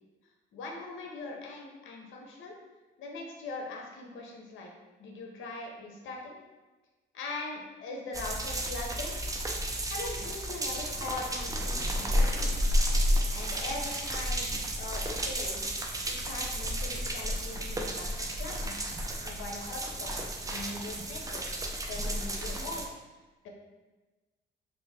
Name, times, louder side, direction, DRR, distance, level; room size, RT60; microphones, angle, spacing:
voice 1, 0.5-2.5 3.0-4.7 5.0-6.4 7.1-9.2 9.9-12.6 13.3-14.5 14.8-15.7 16.0-18.9 19.2-20.2 20.5-21.4 21.9-22.8, left 3 dB, 80° left, 0 dB, 0.7 m, -41 dB
sound 1, 8.1-22.9, equal, 15° right, 0.4 m, -32 dB
3.0 x 2.5 x 3.4 m, 1.2 s
cardioid pair, 90°, 20 cm